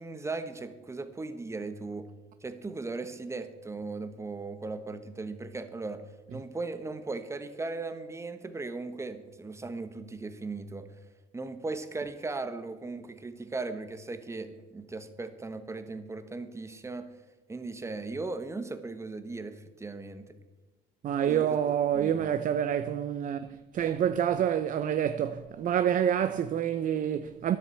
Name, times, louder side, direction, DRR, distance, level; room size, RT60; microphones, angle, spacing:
voice 1, 0.0-2.1 2.4-6.0 6.3-10.9 11.3-17.1 17.5-20.4 21.3-21.4 21.9-22.1, right 3 dB, 15° right, 1.1 m, -37 dB
voice 2, 21.0-27.6, right 9 dB, 50° right, 0.6 m, -27 dB
10.5 x 7.9 x 8.2 m
cardioid pair, 110°, 17 cm